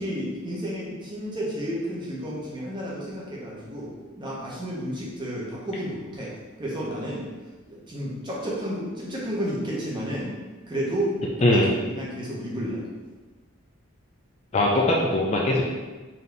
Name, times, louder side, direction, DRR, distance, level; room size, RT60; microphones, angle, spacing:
voice 1, 0.0-3.9 4.2-6.3 6.6-7.2 7.7-10.3 10.7-11.1 11.5-11.6 11.9-12.8, equal, 20° right, -5 dB, 0.8 m, -31 dB
voice 2, 11.4-11.7 14.5-15.6, left 1 dB, 30° left, -3 dB, 0.4 m, -20 dB
4.0 x 2.8 x 3.4 m, 1.3 s
head